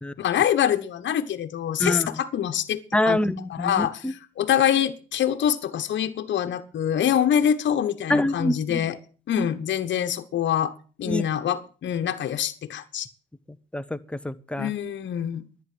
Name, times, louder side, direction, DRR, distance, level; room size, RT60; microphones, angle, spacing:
voice 1, 0.2-3.2 3.5-9.0 9.3-10.7 11.0-13.1 14.6-15.4, left 9 dB, 65° left, 1.2 m, -25 dB
voice 2, 2.9-4.1 8.1-8.8 9.3-9.5 11.0-11.2 13.7-14.7, left 1 dB, 5° left, 1.0 m, -26 dB
11.0 x 9.6 x 7.8 m
cardioid pair, 90°, 20 cm